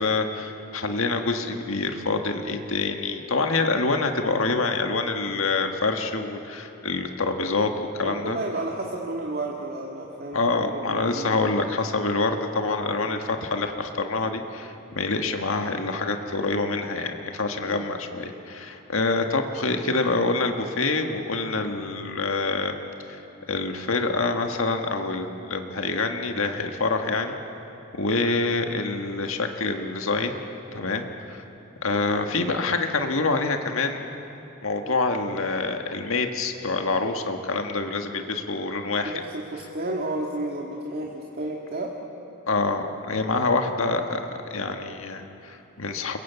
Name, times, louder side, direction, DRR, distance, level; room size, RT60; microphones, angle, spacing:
voice 1, 0.0-8.4 10.3-22.8 23.1-23.2 23.5-27.4 27.9-30.4 30.7-31.4 31.8-34.0 34.6-39.2 42.5-46.2, left 3 dB, 75° left, 4 dB, 1.7 m, -26 dB
voice 2, 8.0-11.5 17.7-17.9 39.0-42.0, right 2 dB, 50° right, -1 dB, 2.1 m, -32 dB
29.0 x 22.5 x 8.3 m, 2.9 s
head